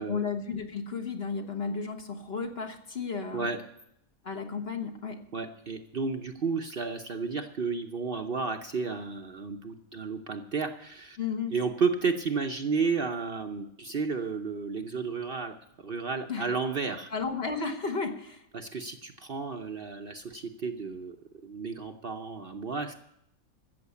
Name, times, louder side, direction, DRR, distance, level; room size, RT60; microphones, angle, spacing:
voice 1, 0.0-3.5 4.2-5.2 11.2-11.5 16.3-16.5 17.1-18.4, left 5 dB, 45° left, 4 dB, 1.5 m, -33 dB
voice 2, 5.3-11.2 11.5-17.1 18.5-21.2 21.4-22.9, right 4 dB, 45° right, 5 dB, 0.9 m, -32 dB
14.0 x 7.6 x 8.3 m, 0.75 s
omnidirectional pair, 1.5 m